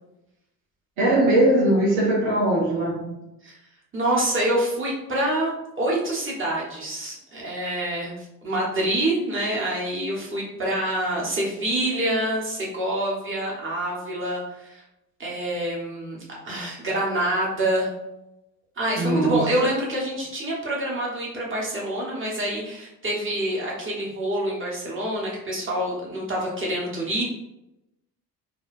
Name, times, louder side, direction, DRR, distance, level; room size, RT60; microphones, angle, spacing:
voice 1, 1.0-3.1 19.0-19.4, right 1 dB, 70° right, -4 dB, 0.9 m, -20 dB
voice 2, 3.9-14.8 15.2-17.9 18.8-27.2, right 1 dB, 25° right, -4 dB, 1.4 m, -26 dB
3.4 x 2.4 x 2.7 m, 0.89 s
figure-of-eight pair, 45°, 49 cm